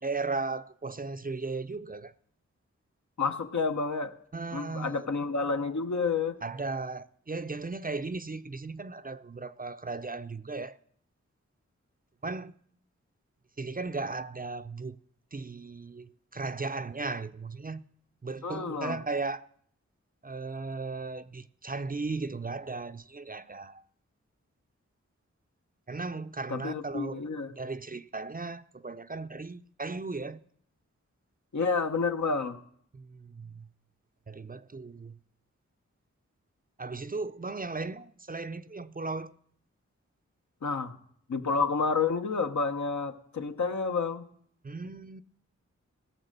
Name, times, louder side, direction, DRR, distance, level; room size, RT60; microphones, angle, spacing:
voice 1, 0.0-2.1 4.3-5.1 6.4-10.8 12.2-12.6 13.6-15.0 15.3-17.9 18.2-19.4 20.2-23.8 25.9-30.4 32.9-33.7 34.3-35.2 36.8-39.3 44.6-45.2, right 3 dB, 30° right, 0.5 m, -36 dB
voice 2, 3.2-4.1 4.5-6.4 18.4-19.0 26.5-27.5 31.5-32.6 40.6-41.0 41.3-44.2, left 4 dB, 70° left, 1.0 m, -29 dB
17.0 x 6.4 x 6.7 m
cardioid pair, 45°, 30 cm